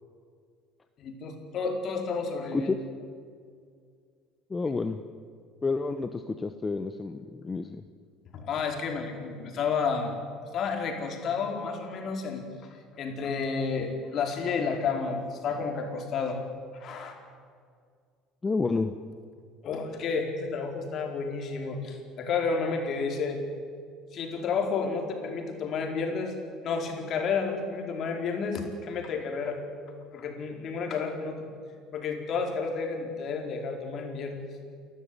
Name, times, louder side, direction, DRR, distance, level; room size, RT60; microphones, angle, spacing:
voice 1, 1.0-2.7 4.6-4.7 8.3-10.1 10.5-12.4 13.0-16.4 16.7-17.1 19.6-23.4 24.1-26.3 26.6-29.6 30.1-31.5 31.9-34.4, left 5 dB, 50° left, 3 dB, 4.7 m, -31 dB
voice 2, 4.5-5.0 5.6-7.8 18.4-18.9, left 4 dB, 20° left, 8 dB, 1.1 m, -29 dB
29.5 x 13.5 x 9.8 m, 2.1 s
supercardioid pair, 90°, 0 cm